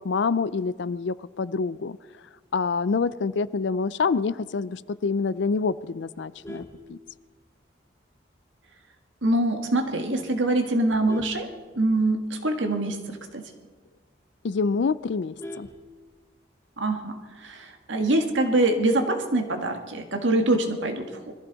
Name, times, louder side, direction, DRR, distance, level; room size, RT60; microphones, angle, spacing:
voice 1, 0.0-2.0 2.5-7.0 14.4-15.7, left 4 dB, 65° left, 18 dB, 0.4 m, -27 dB
Vehicle horn car horn honking, 6.2-7.6 8.1-8.4 8.7-8.8 9.2-9.3 9.6-9.9 10.5-12.3 12.7-12.8 13.1-13.2 13.6-13.7 14.0-14.1 14.4-16.4 17.6-18.1, left 1 dB, 15° left, 1.0 m, -43 dB
voice 2, 9.2-11.5 11.7-13.4 16.8-21.3, right 2 dB, 80° right, 5 dB, 1.7 m, -24 dB
21.5 x 14.5 x 4.0 m, 1.4 s
head